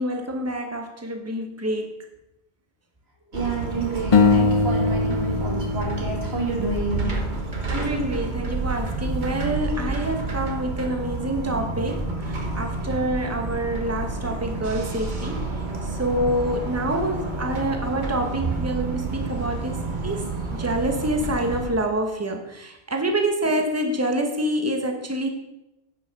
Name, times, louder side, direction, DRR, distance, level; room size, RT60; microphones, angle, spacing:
voice 1, 0.0-2.0 7.7-15.4 15.9-25.3, right 1 dB, 15° right, 4 dB, 1.0 m, -27 dB
sound 1, 3.3-21.7, right 3 dB, 50° right, 1.3 m, -30 dB
voice 2, 3.3-7.5, right 3 dB, 70° right, -1 dB, 2.4 m, -29 dB
sound 2, 4.1-7.3, left 4 dB, 40° left, 0.5 m, -22 dB
10.5 x 5.7 x 5.3 m, 0.93 s
omnidirectional pair, 1.1 m